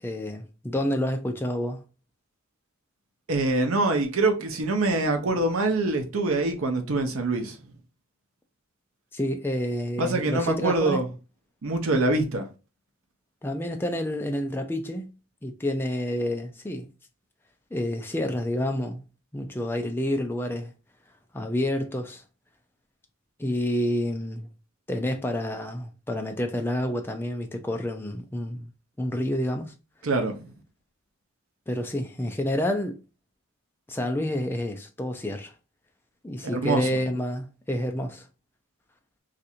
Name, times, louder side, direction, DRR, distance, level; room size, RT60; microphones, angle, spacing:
voice 1, 0.0-1.8 9.1-11.0 13.4-15.1 15.4-16.9 17.7-19.0 19.3-20.7 21.3-22.2 23.4-24.5 24.9-28.7 29.0-29.7 31.7-33.0 33.9-35.5 36.2-38.3, left 1 dB, 10° left, 0.3 m, -29 dB
voice 2, 3.3-7.6 10.0-11.0 11.6-12.5 30.0-30.5 36.4-36.9, right 2 dB, 75° right, 0.7 m, -24 dB
2.6 x 2.5 x 4.2 m
head